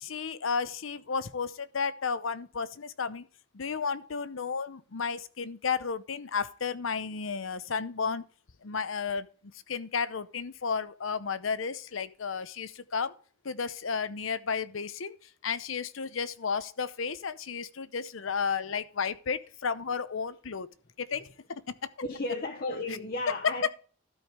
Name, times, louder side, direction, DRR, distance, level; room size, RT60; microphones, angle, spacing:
voice 1, 0.0-3.3 3.5-8.2 8.6-9.3 9.7-13.1 13.4-15.1 15.4-20.7 21.0-21.2 21.5-21.9, left 5 dB, 85° left, 0.8 m, -33 dB
voice 2, 22.0-23.7, left 2 dB, 50° left, 1.1 m, -34 dB
12.5 x 5.3 x 4.7 m
head